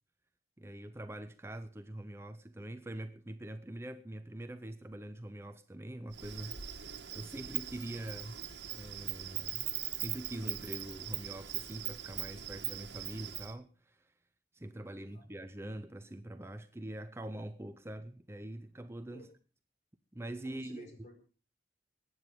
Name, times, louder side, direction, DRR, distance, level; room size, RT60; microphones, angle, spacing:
voice 1, 0.6-8.4 8.7-9.7 9.9-14.1 14.5-19.3 20.1-20.9, right 1 dB, 15° right, 0.6 m, -44 dB
Insect, 6.1-13.5, right 12 dB, 85° right, 1.5 m, -40 dB
voice 2, 14.9-15.3 19.1-19.3 20.4-21.1, left 1 dB, 40° left, 4.5 m, -54 dB
22.0 x 9.6 x 5.3 m
head